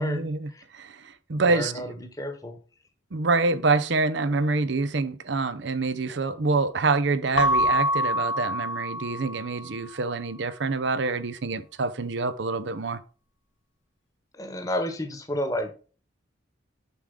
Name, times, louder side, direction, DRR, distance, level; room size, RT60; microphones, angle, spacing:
voice 1, 0.0-1.9 3.1-13.0, right 3 dB, 65° right, 0.6 m, -26 dB
voice 2, 1.5-2.6 14.3-15.9, left 1 dB, 20° left, 1.1 m, -31 dB
Keyboard (musical) / Bell, 7.3-9.8, equal, 80° left, 0.7 m, -26 dB
6.9 x 6.2 x 3.7 m
head